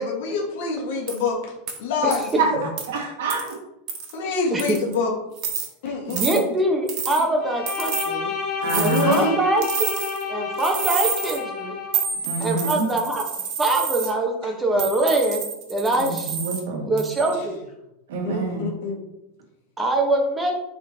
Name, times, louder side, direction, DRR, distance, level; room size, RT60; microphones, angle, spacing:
voice 1, 0.0-1.4 1.8-2.4 4.1-5.1 5.8-6.4 8.7-9.3 18.2-19.0, left 4 dB, 70° left, -1 dB, 1.6 m, -25 dB
sound 1, 1.1-1.2 1.7-1.8 2.1-2.3 2.8-2.9 3.3-3.5 3.9-4.1 4.6-4.9 5.4-5.7 6.1-6.4 6.9-7.2 7.7-8.1 8.7-9.2 9.6-10.2 10.6-11.4 11.9-14.1 14.8-16.6 17.0-17.3, right 7 dB, 45° right, 1.1 m, -29 dB
voice 2, 2.4-3.6 8.6-9.2 12.2-12.9 16.0-17.1 18.1-18.7, right 4 dB, 90° right, 1 dB, 1.7 m, -27 dB
voice 3, 6.1-8.3 8.8-9.9 10.3-11.8 12.4-13.2 13.6-15.4 15.7-16.4 16.9-17.7 19.8-20.5, right 2 dB, 10° right, 2 dB, 1.0 m, -23 dB
Bowed string instrument, 7.4-12.0, left 5 dB, 40° left, 1.3 m, -30 dB
10.0 x 3.7 x 2.8 m, 0.87 s
supercardioid pair, 160°, 0 cm